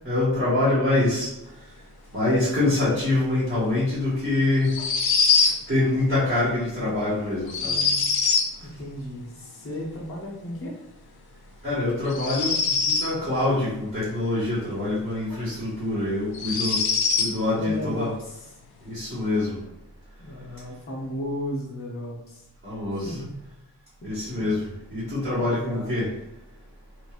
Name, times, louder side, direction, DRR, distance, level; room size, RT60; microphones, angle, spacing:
voice 1, 0.0-1.3 2.1-4.8 5.7-7.7 11.6-12.5 12.8-16.8 17.2-18.1 18.8-19.6 22.6-23.1 24.0-24.6 24.9-26.1, left 2 dB, 30° right, -12 dB, 1.3 m, -25 dB
sound 1, 4.6-5.6 7.5-8.5 12.1-13.1 15.3-15.4 16.3-17.3, left 5 dB, 90° left, 0.5 m, -23 dB
voice 2, 7.6-8.1 8.6-10.8 17.6-18.6 20.2-22.5 22.9-23.3 24.3-24.4 25.3-25.9, equal, 40° left, -5 dB, 0.7 m, -35 dB
2.9 x 2.6 x 2.4 m, 0.85 s
wide cardioid pair, 95°, 36 cm